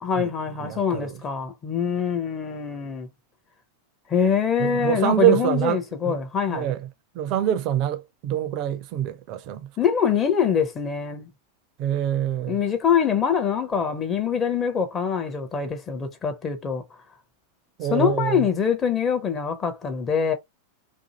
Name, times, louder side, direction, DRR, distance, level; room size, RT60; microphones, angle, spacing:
voice 1, 0.0-3.1 4.1-6.7 9.8-11.3 12.5-16.8 17.9-20.3, left 7 dB, 25° left, 0.6 m, -24 dB
voice 2, 0.6-1.2 4.6-6.2 6.5-6.9 7.1-9.7 11.8-12.6 17.8-18.5, right 11 dB, 40° right, 0.5 m, -25 dB
2.6 x 2.5 x 2.7 m
figure-of-eight pair, 90°, 0 cm